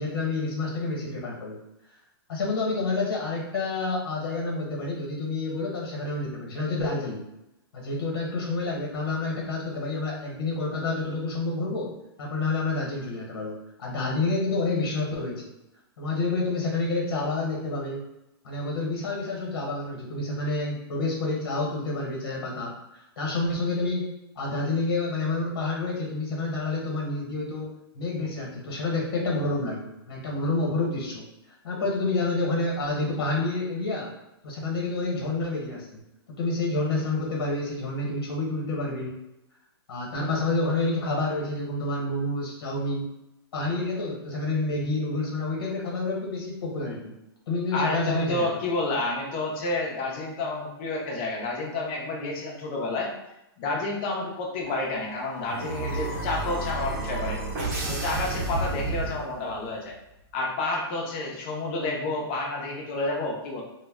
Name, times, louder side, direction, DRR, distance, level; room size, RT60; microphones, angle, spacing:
voice 1, 0.0-1.6 2.3-7.3 7.7-15.4 16.0-18.0 18.4-27.7 27.9-31.2 31.6-34.1 34.4-36.0 36.4-39.2 39.9-43.1 43.5-47.1 47.5-48.5, left 2 dB, 65° left, -1 dB, 1.0 m, -29 dB
voice 2, 47.7-53.1 53.6-57.4 57.9-59.9 60.3-63.6, left 2 dB, 25° left, -1 dB, 0.5 m, -30 dB
sound 1, 54.6-59.6, right 2 dB, 35° right, 0.7 m, -31 dB
2.1 x 2.1 x 3.5 m, 0.89 s
hypercardioid pair, 175°, 13 cm